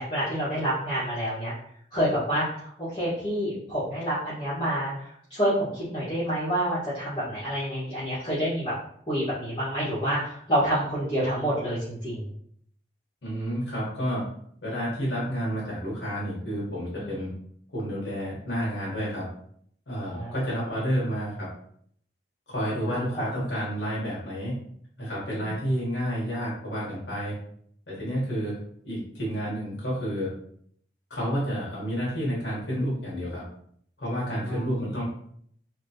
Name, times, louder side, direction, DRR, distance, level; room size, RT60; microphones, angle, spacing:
voice 1, 0.0-1.5 1.9-8.7 9.1-12.3 17.0-17.1 20.1-20.4 23.2-23.3 25.3-25.5 34.3-34.7, equal, 25° left, -13 dB, 1.3 m, -28 dB
voice 2, 13.2-14.3 14.6-17.3 17.7-19.3 19.9-21.5 22.5-24.5 25.0-27.3 27.9-28.6 28.8-30.3 31.1-33.4 34.0-35.0, equal, 90° left, -6 dB, 1.2 m, -30 dB
3.1 x 2.9 x 2.7 m, 0.64 s
head